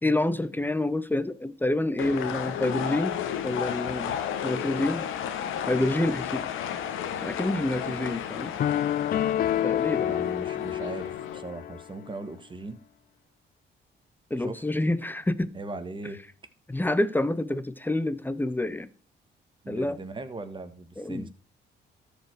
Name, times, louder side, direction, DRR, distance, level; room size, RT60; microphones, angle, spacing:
voice 1, 0.0-3.2 3.4-4.2 4.4-5.1 5.7-6.5 6.7-6.9 7.2-8.5 9.6-10.1 14.3-15.5 16.7-18.9 19.7-20.0 21.0-21.3, left 1 dB, 10° left, 0.7 m, -27 dB
sound 1, 2.0-11.4, left 9 dB, 90° left, 1.2 m, -33 dB
sound 2, 8.6-11.8, left 11 dB, 50° left, 0.4 m, -28 dB
voice 2, 9.9-12.8 14.4-14.6 15.5-16.2 19.6-21.3, right 3 dB, 25° right, 1.5 m, -39 dB
13.5 x 5.1 x 4.7 m
cardioid pair, 90°, 20 cm